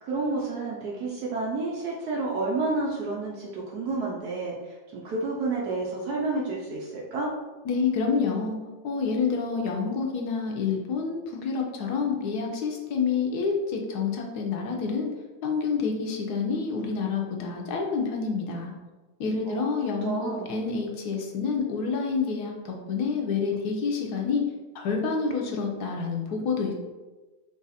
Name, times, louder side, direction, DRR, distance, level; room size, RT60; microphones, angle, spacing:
voice 1, 0.0-7.3 19.5-19.7 20.0-20.5, right 3 dB, 70° right, -3 dB, 1.0 m, -30 dB
voice 2, 7.6-8.6 8.8-15.1 15.4-18.7 19.2-24.4 24.7-26.8, left 5 dB, 70° left, 1 dB, 1.0 m, -28 dB
4.0 x 2.5 x 4.0 m, 1.2 s
omnidirectional pair, 2.1 m